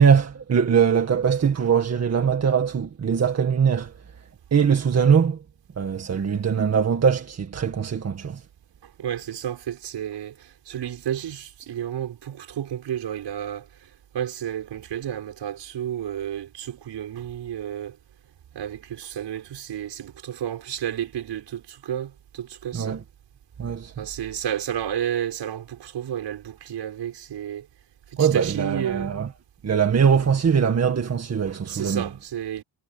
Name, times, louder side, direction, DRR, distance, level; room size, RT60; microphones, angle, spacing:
voice 1, 0.0-3.9 4.5-5.4 5.8-8.4 22.7-23.0 23.6-23.9 28.2-29.3 29.6-32.1, right 7 dB, 35° right, 2.0 m, -21 dB
voice 2, 8.8-18.0 18.5-23.0 24.0-27.7 28.1-29.1 31.7-32.6, right 10 dB, 70° right, 6.7 m, -31 dB
wide cardioid pair, 160°, 44 cm